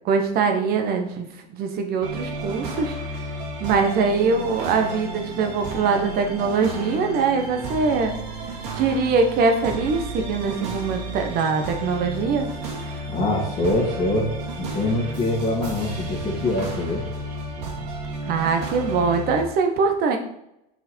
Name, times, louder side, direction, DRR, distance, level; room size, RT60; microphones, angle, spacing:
voice 1, 0.0-1.3 1.5-2.9 3.6-8.1 8.7-12.4 18.2-20.2, right 4 dB, 50° right, 5 dB, 1.2 m, -22 dB
sound 1, 2.0-19.4, right 2 dB, 80° right, 2.3 m, -32 dB
voice 2, 13.1-17.0, left 2 dB, 30° left, -6 dB, 2.2 m, -24 dB
6.5 x 4.9 x 4.5 m, 0.81 s
supercardioid pair, 115°, 20 cm